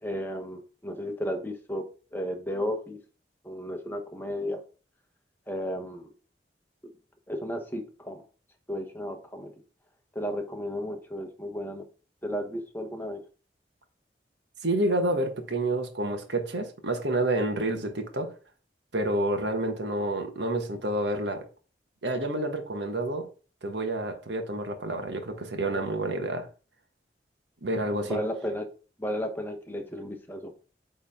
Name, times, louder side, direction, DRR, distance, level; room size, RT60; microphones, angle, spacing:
voice 1, 0.0-3.0 3.4-4.6 5.5-6.1 6.8-6.9 7.3-8.2 8.7-9.5 10.1-11.9 12.2-13.2 27.9-30.5, equal, 10° left, 1.0 m, -34 dB
voice 2, 14.6-18.3 18.9-21.4 22.0-23.3 23.6-26.5 27.6-28.2, right 1 dB, 80° right, 1.4 m, -29 dB
8.7 x 3.7 x 3.6 m
head